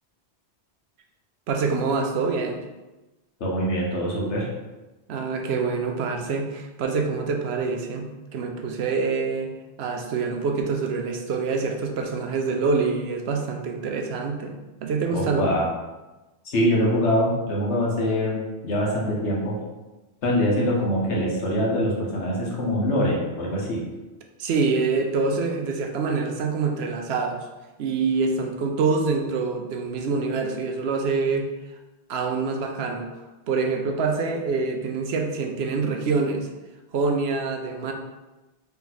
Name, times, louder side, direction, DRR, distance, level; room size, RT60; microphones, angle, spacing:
voice 1, 1.5-2.6 5.1-9.5 9.8-15.5 24.4-27.5 27.8-31.5 32.1-33.1 33.5-36.5 36.9-37.9, right 4 dB, 70° right, 3 dB, 0.8 m, -26 dB
voice 2, 3.4-4.5 15.1-15.7 16.4-19.6 20.2-23.8, equal, 90° left, -3 dB, 1.3 m, -24 dB
3.3 x 2.9 x 3.9 m, 1.1 s
omnidirectional pair, 1.1 m